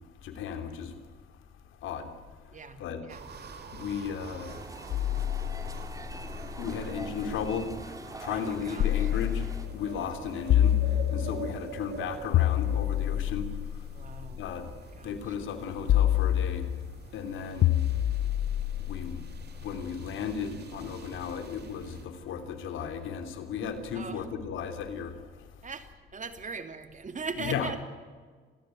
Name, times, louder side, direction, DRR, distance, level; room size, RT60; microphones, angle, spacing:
voice 1, 0.2-0.9 1.8-2.1 2.8-3.0 3.7-4.5 6.6-7.7 8.2-9.4 9.7-10.8 11.1-13.4 14.4-14.7 15.0-16.6 17.1-17.7 18.8-19.2 19.6-25.1 27.4-27.7, left 7 dB, 85° left, 7 dB, 3.2 m, -35 dB
voice 2, 2.5-3.2 8.3-9.1 13.9-14.4 14.9-15.3 23.9-24.2 25.6-27.8, right 4 dB, 40° right, 8 dB, 2.9 m, -40 dB
sound 1, 3.1-22.1, right 5 dB, 55° right, 3.6 m, -46 dB
sound 2, 4.5-9.7, right 2 dB, 15° right, 2.8 m, -44 dB
sound 3, 4.9-7.7 8.8-9.8 10.5-11.6 12.3-14.6 15.9-17.0 17.6-19.8, left 12 dB, 65° left, 0.6 m, -27 dB
27.5 x 15.0 x 9.2 m, 1.5 s
cardioid pair, 90°, 20 cm